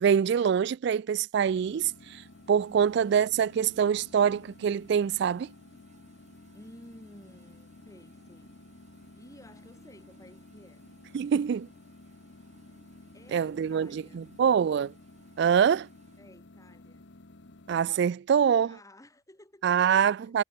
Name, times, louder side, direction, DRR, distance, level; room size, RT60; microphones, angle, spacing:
voice 1, 0.0-5.5 11.1-11.7 13.3-14.9 15.4-15.9 17.7-18.8 19.6-20.4, right 7 dB, 60° right, 0.3 m, -25 dB
sound 1, 1.5-17.9, left 2 dB, 60° left, 1.1 m, -53 dB
sound 2, 1.6-16.3, right 2 dB, 35° right, 4.9 m, -63 dB
voice 2, 6.5-8.6 9.1-10.9 13.1-14.2 16.2-17.1 18.6-20.3, left 1 dB, 15° left, 3.2 m, -54 dB
head